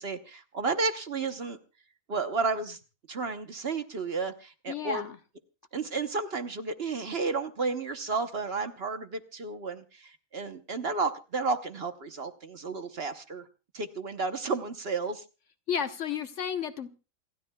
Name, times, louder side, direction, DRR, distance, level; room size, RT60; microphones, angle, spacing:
voice 1, 0.0-1.6 2.1-2.8 3.1-5.1 5.7-13.4 13.7-15.2, right 4 dB, 50° right, 8 dB, 1.1 m, -32 dB
voice 2, 4.7-5.2 15.7-16.9, left 8 dB, 60° left, 9 dB, 1.2 m, -32 dB
28.0 x 13.0 x 2.3 m, 0.34 s
omnidirectional pair, 1.5 m